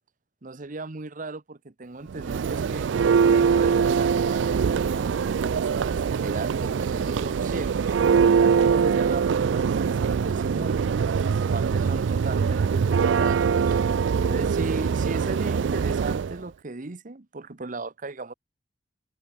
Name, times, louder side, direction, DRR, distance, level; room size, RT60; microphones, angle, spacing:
voice 1, 0.4-2.9 3.2-7.9 8.4-11.0 11.4-13.8 14.3-18.3, right 3 dB, 45° right, 1.0 m, -36 dB
Church bell, 2.1-16.3, right 6 dB, 75° right, 0.4 m, -23 dB
head